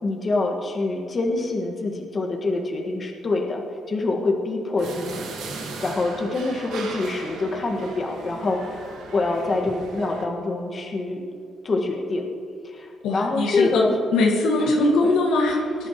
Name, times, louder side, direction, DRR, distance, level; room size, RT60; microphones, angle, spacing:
voice 1, 0.0-3.6 3.9-5.2 5.8-11.2 11.6-12.3 12.6-13.9 15.0-15.1, left 2 dB, 35° left, 1 dB, 1.7 m, -25 dB
sound 1, 4.8-10.3, right 3 dB, 85° right, 1.6 m, -37 dB
voice 2, 13.0-15.9, left 2 dB, 85° left, -1 dB, 1.8 m, -21 dB
19.5 x 11.0 x 3.1 m, 2.4 s
cardioid pair, 90°, 0 cm